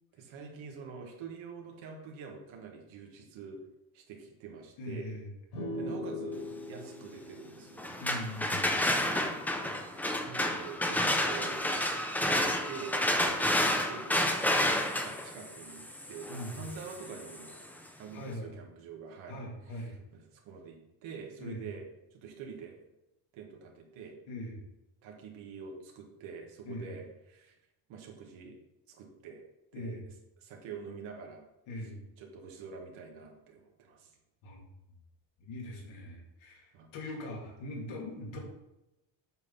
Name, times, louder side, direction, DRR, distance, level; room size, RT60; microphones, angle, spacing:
voice 1, 0.1-3.6 3.9-5.1 5.8-8.0 9.0-9.5 9.7-11.8 12.2-12.4 12.7-13.0 13.7-14.4 15.0-16.3 16.6-17.5 18.0-19.4 19.7-21.8 22.1-22.7 23.3-24.2 25.0-27.5 27.9-28.6 28.9-29.4 29.7-30.0 30.4-31.4 31.7-31.9 32.2-34.1 36.7-36.9, right 5 dB, 75° right, 1 dB, 1.7 m, -46 dB
voice 2, 4.8-5.3 8.0-8.7 16.3-16.6 18.1-18.5 19.3-20.0 21.4-21.6 24.3-24.6 26.6-26.9 29.7-30.0 31.7-32.0 34.4-34.6 35.4-38.4, left 1 dB, 80° left, -1 dB, 2.6 m, -41 dB
sound 1, 5.5-9.1, left 1 dB, 50° left, 2.7 m, -41 dB
sound 2, 7.8-17.6, left 1 dB, 5° left, 0.4 m, -30 dB
8.1 x 5.7 x 4.1 m, 0.94 s
cardioid pair, 165°, 47 cm